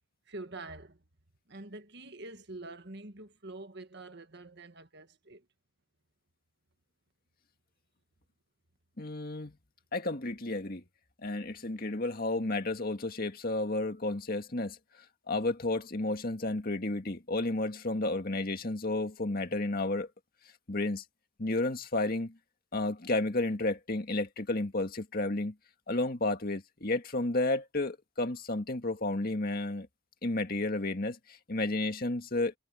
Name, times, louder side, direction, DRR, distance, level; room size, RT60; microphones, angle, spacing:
voice 1, 0.3-1.0 1.5-5.5, right 2 dB, 55° right, 1.7 m, -46 dB
voice 2, 9.0-9.6 9.9-10.8 11.2-14.8 15.3-20.1 20.7-21.0 21.4-22.4 22.7-25.5 25.9-29.9 30.2-32.5, left 2 dB, 45° left, 2.0 m, -32 dB
head